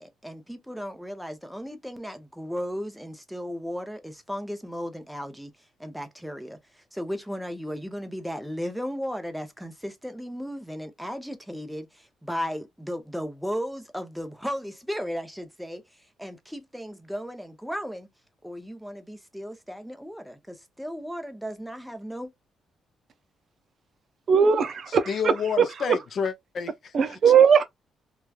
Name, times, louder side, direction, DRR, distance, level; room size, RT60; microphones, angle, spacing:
voice 1, 0.0-5.5 5.8-15.8 16.2-18.1 18.4-22.3, equal, ahead, 0.7 m, -35 dB
voice 2, 24.3-25.6 26.9-27.6, right 7 dB, 55° right, 0.5 m, -19 dB
voice 3, 24.9-27.2, left 6 dB, 55° left, 0.5 m, -30 dB
3.0 x 2.3 x 2.3 m
cardioid pair, 90°, 0 cm